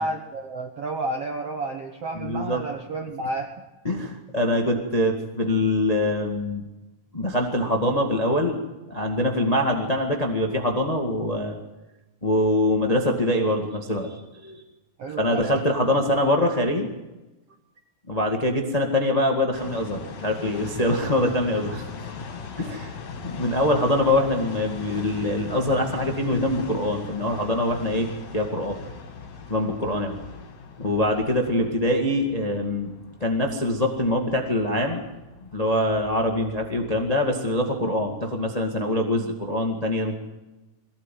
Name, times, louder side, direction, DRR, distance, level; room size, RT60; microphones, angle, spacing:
voice 1, 0.0-3.5 15.0-15.6, right 2 dB, 70° right, 5 dB, 1.4 m, -31 dB
voice 2, 2.1-2.6 3.8-6.6 7.1-8.6 8.9-11.6 12.2-14.6 15.2-16.9 18.1-21.9 22.6-22.9 23.2-28.8 29.5-30.2 30.8-32.9 33.2-35.0 35.5-40.1, left 1 dB, 65° left, 2 dB, 0.3 m, -24 dB
sound 1, 19.5-35.8, left 5 dB, 50° left, 3.0 m, -39 dB
22.5 x 17.0 x 9.3 m, 1.1 s
omnidirectional pair, 4.6 m